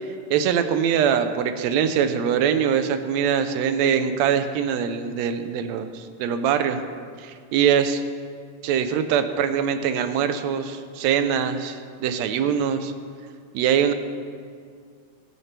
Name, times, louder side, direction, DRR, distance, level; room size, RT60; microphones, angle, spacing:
voice 1, 0.3-6.8 7.2-8.0 8.6-12.9 13.5-13.9, right 8 dB, 70° right, 9 dB, 1.8 m, -23 dB
22.5 x 11.0 x 3.4 m, 2.2 s
omnidirectional pair, 3.7 m